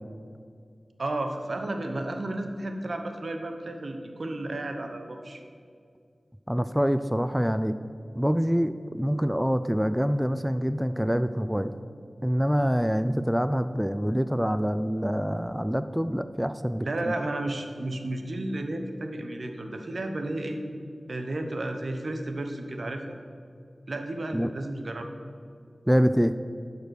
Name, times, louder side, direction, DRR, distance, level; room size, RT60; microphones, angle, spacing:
voice 1, 1.0-5.4 16.8-20.6 21.1-23.2 23.9-25.1, right 1 dB, 65° right, 5 dB, 0.9 m, -32 dB
voice 2, 6.5-7.8 8.1-11.7 12.2-17.1 24.3-24.5 25.9-26.3, equal, 5° right, 11 dB, 0.3 m, -25 dB
11.0 x 5.2 x 6.3 m, 2.3 s
wide cardioid pair, 60°, 0 cm